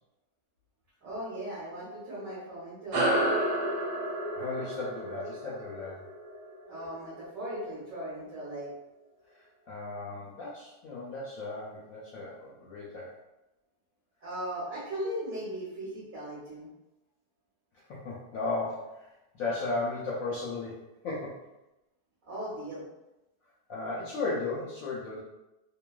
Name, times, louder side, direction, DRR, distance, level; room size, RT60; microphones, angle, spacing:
voice 1, 1.0-3.3 6.7-8.7 14.2-16.7 22.2-22.9, right 1 dB, 60° right, -7 dB, 1.1 m, -38 dB
sound 1, 2.9-7.8, right 1 dB, 75° right, 1.3 m, -31 dB
voice 2, 4.3-6.0 9.3-13.1 17.9-21.4 23.7-25.2, left 3 dB, 70° left, -6 dB, 0.8 m, -35 dB
3.0 x 2.1 x 2.2 m, 0.96 s
omnidirectional pair, 1.9 m